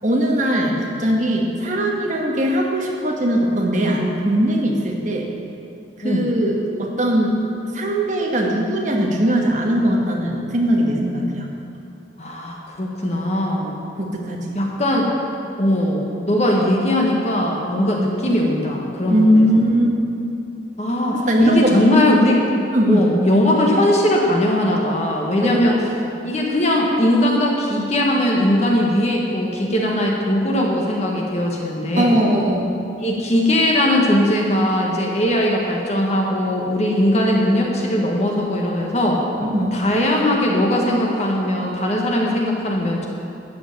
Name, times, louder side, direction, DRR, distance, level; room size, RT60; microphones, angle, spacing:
voice 1, 0.0-5.3 6.0-7.4 7.7-11.4 14.0-14.6 19.1-19.9 21.1-21.7 22.7-23.1 25.4-25.6 32.0-32.7 39.4-39.7, equal, 40° right, -1 dB, 1.5 m, -20 dB
voice 2, 12.2-13.8 14.5-15.1 15.6-19.7 20.8-22.4 22.9-25.8 26.2-32.2 33.0-39.2 39.7-43.1, left 1 dB, 35° left, -1 dB, 1.4 m, -19 dB
13.0 x 5.1 x 8.6 m, 2.8 s
head